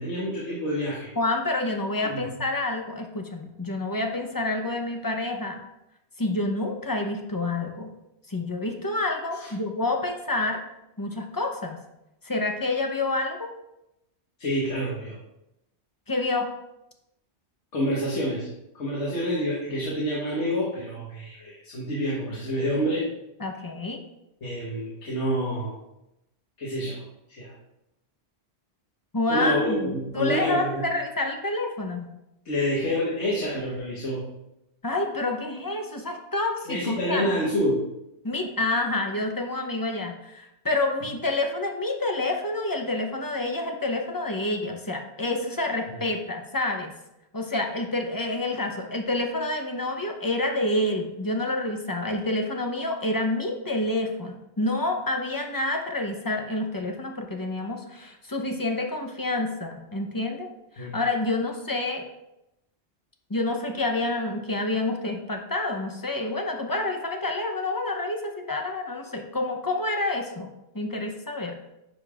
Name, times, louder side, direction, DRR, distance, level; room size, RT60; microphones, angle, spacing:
voice 1, 0.0-1.1 2.0-2.3 9.4-9.5 14.4-15.1 17.7-18.5 18.7-23.0 24.4-25.7 26.6-27.0 27.3-27.5 29.3-30.9 32.5-34.2 36.7-37.8 45.9-46.0 60.8-61.0, equal, 85° left, -6 dB, 1.7 m, -27 dB
voice 2, 1.2-5.6 6.2-7.9 8.3-10.6 11.0-11.8 12.2-13.5 16.1-16.5 23.4-24.0 29.1-32.1 34.8-37.4 38.2-46.9 47.3-60.5 60.8-62.1 63.3-71.6, left 2 dB, 20° left, 3 dB, 0.6 m, -28 dB
9.8 x 5.2 x 2.4 m, 0.88 s
omnidirectional pair, 1.2 m